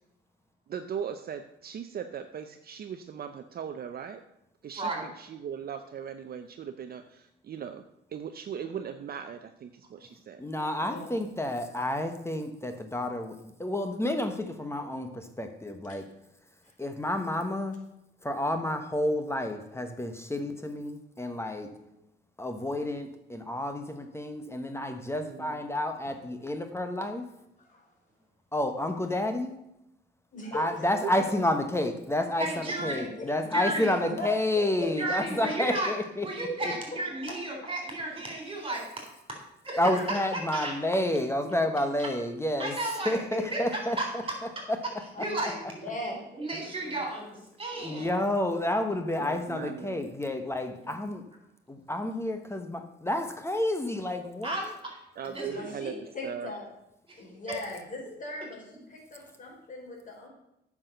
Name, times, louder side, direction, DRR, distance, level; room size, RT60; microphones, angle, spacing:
voice 1, 0.7-4.2 4.6-7.8 8.1-10.4 25.2-25.6 31.0-31.4 32.2-32.3 35.4-35.7 49.2-50.1 55.2-55.9 56.2-56.5, right 8 dB, 50° right, 8 dB, 0.6 m, -39 dB
voice 2, 10.4-16.1 16.8-17.8 18.2-21.7 22.4-27.3 28.5-29.5 30.5-36.3 39.8-42.7 43.0-44.8 45.2-45.5 47.8-51.2 51.7-54.7, left 1 dB, 15° left, 7 dB, 1.1 m, -30 dB
voice 3, 27.6-27.9 30.3-30.9 32.9-33.3 34.2-34.3 34.5-35.1 36.6-36.7 37.3-37.4 39.9-40.2 45.1-46.3 55.5-56.7 57.2-60.3, left 1 dB, 40° left, -1 dB, 4.2 m, -40 dB
voice 4, 32.4-33.1 33.5-34.0 35.0-35.9 36.2-38.8 39.6-39.8 40.5-40.7 41.4-41.5 42.6-43.2 43.5-43.6 44.0-44.1 45.2-45.9 46.3-48.1 54.4-55.0 55.2-55.6, right 2 dB, 25° right, 0 dB, 3.9 m, -33 dB
8.9 x 6.1 x 6.6 m, 0.84 s
cardioid pair, 90°, 20 cm